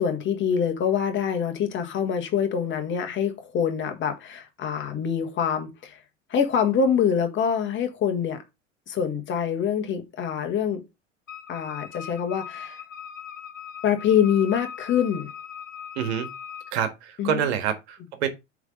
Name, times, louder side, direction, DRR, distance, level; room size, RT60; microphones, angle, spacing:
voice 1, 0.0-6.0 6.3-8.4 8.9-10.8 11.5-12.8 13.8-15.3 17.2-17.4, left 7 dB, 30° left, 1.6 m, -25 dB
Wind instrument woodwind instrument, 11.3-16.8, left 8 dB, 80° left, 1.5 m, -40 dB
voice 2, 15.9-16.3 16.7-18.3, right 8 dB, 55° right, 1.6 m, -27 dB
8.0 x 3.7 x 5.2 m
figure-of-eight pair, 85°, 38 cm